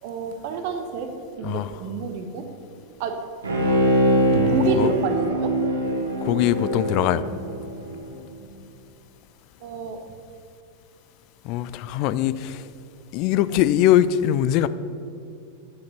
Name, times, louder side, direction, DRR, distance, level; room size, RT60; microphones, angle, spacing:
voice 1, 0.0-2.5 3.0-3.3 4.3-5.6 9.6-10.0, right 5 dB, 45° right, 6 dB, 1.0 m, -28 dB
Bowed string instrument, 3.4-8.0 8.4-8.5, equal, 70° right, 1.9 m, -23 dB
voice 2, 6.2-7.2 11.4-12.7 13.1-14.7, left 12 dB, 40° left, 15 dB, 0.4 m, -21 dB
9.6 x 6.5 x 5.7 m, 2.6 s
figure-of-eight pair, 90°, 0 cm